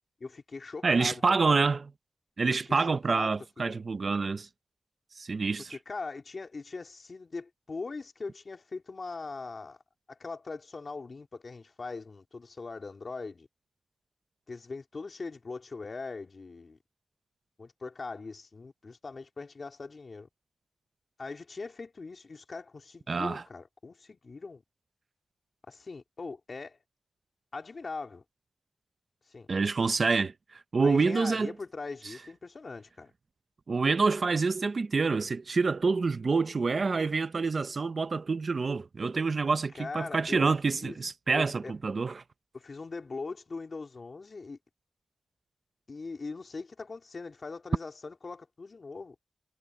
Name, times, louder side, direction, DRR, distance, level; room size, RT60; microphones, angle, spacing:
voice 1, 0.2-1.2 2.5-3.8 5.9-9.8 10.1-13.5 14.5-16.8 17.6-20.3 21.2-24.6 25.7-26.8 27.5-28.2 29.3-29.5 30.8-33.1 39.7-40.5 40.8-41.0 41.3-41.7 42.5-44.6 45.9-49.2, left 4 dB, 40° left, 3.5 m, -41 dB
voice 2, 0.8-1.9 2.4-4.5 5.2-5.8 23.1-23.4 29.5-31.5 33.7-42.1, right 4 dB, 45° right, 0.6 m, -27 dB
wide cardioid pair, 165°, 0 cm